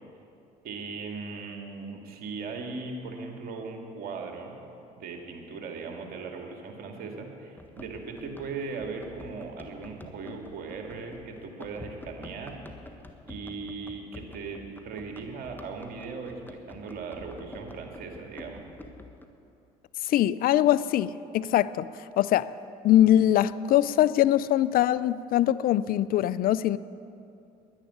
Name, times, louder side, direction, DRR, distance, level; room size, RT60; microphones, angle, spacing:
voice 1, 0.6-4.5 4.9-12.6 12.9-18.6, right 4 dB, 60° right, 2.3 m, -38 dB
Run, 7.6-19.3, left 2 dB, 10° left, 1.4 m, -48 dB
voice 2, 20.0-21.9 22.2-22.5 22.8-26.8, left 12 dB, 60° left, 0.4 m, -22 dB
11.0 x 10.5 x 9.6 m
hypercardioid pair, 60°, 17 cm